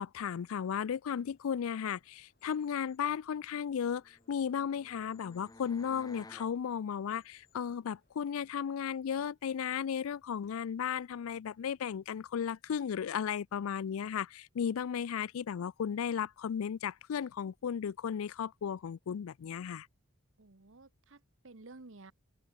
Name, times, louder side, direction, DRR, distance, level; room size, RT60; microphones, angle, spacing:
voice 1, 0.0-19.9, left 7 dB, 90° left, 0.4 m, -35 dB
sound 1, 0.8-8.5, left 6 dB, 45° left, 3.8 m, -74 dB
sound 2, 4.0-6.6, left 2 dB, 20° left, 0.8 m, -55 dB
voice 2, 20.4-22.1, right 3 dB, 65° right, 1.1 m, -54 dB
head